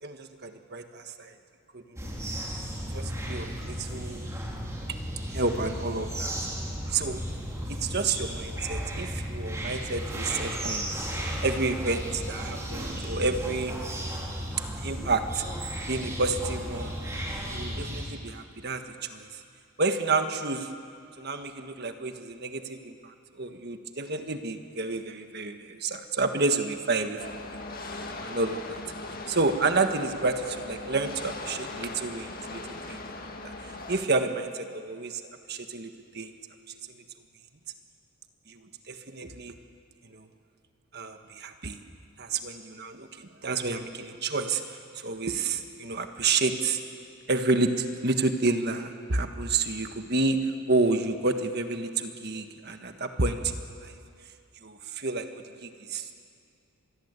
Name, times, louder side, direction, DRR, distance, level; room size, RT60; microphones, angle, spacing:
voice 1, 0.0-1.3 1.7-2.2 2.9-4.3 4.9-5.0 5.3-6.3 6.9-7.2 7.7-10.9 11.4-13.8 14.8-15.4 15.9-17.0 17.5-19.4 19.8-20.7 21.2-27.6 28.2-28.8 29.3-35.2 35.5-36.3 38.5-39.6 40.1-40.3 40.9-41.8 42.2-46.8 47.3-53.9 54.6-56.1, right 3 dB, 45° right, 7 dB, 1.5 m, -30 dB
sound 1, 2.0-18.1, equal, 15° right, 3.1 m, -34 dB
sound 2, 27.2-34.0, left 2 dB, 40° left, 2.0 m, -39 dB
26.0 x 20.5 x 8.3 m, 2.4 s
head